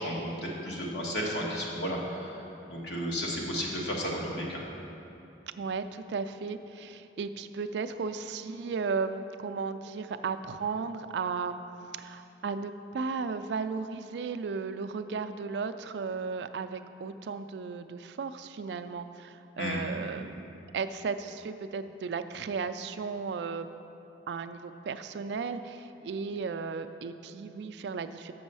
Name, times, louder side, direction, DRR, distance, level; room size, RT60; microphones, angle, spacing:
voice 1, 0.0-2.3 2.7-4.6 19.6-19.8, equal, 70° left, -2 dB, 1.4 m, -33 dB
voice 2, 5.6-11.6 12.0-20.5 20.7-23.7 24.3-28.3, right 5 dB, 70° right, 10 dB, 0.3 m, -35 dB
7.0 x 6.2 x 5.4 m, 2.8 s
head